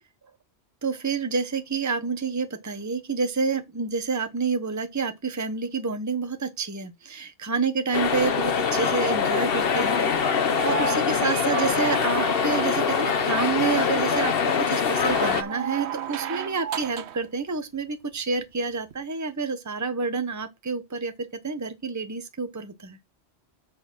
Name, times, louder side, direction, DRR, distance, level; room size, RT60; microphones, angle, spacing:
voice 1, 0.8-23.0, right 4 dB, 15° right, 0.9 m, -28 dB
sound 1, 7.9-15.4, left 6 dB, 60° left, 1.1 m, -24 dB
sound 2, 10.4-12.9 14.8-17.3 18.9-19.0, right 9 dB, 75° right, 1.0 m, -34 dB
7.8 x 4.2 x 6.1 m
omnidirectional pair, 1.1 m